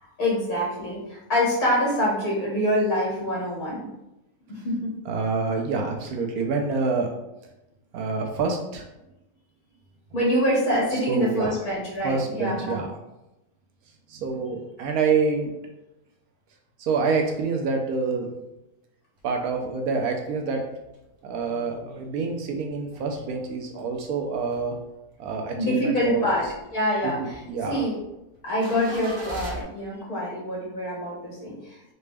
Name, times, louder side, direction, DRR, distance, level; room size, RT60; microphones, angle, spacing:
voice 1, 0.2-3.9 4.5-4.9 10.1-12.8 25.6-26.5 26.7-27.4 27.7-28.0 28.4-31.8, equal, 60° left, -5 dB, 2.0 m, -25 dB
voice 2, 5.1-7.1 7.9-8.8 11.1-11.5 12.0-12.9 14.1-15.5 16.8-18.3 19.2-20.6 21.2-24.8 25.2-26.3 27.2-27.8, right 4 dB, 75° right, 2 dB, 1.0 m, -27 dB
sound 1, 19.2-19.8 20.2-20.3 20.5-24.0 24.3-25.3 25.7-29.6, equal, 55° right, 0.9 m, -42 dB
4.0 x 2.2 x 3.3 m, 0.92 s
omnidirectional pair, 1.6 m